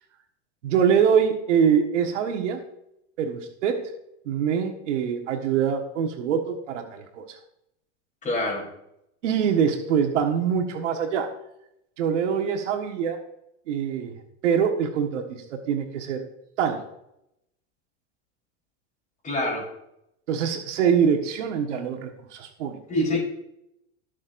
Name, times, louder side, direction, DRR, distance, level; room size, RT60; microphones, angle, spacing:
voice 1, 0.6-2.6 3.2-3.9 4.2-7.4 9.2-11.3 12.0-13.2 13.7-16.3 16.6-16.8 20.3-22.8, right 7 dB, 85° right, 4 dB, 1.5 m, -24 dB
voice 2, 8.2-8.7 19.2-19.7 22.9-23.2, left 1 dB, 20° left, -1 dB, 3.7 m, -25 dB
19.5 x 6.5 x 2.6 m, 0.81 s
supercardioid pair, 140°, 35 cm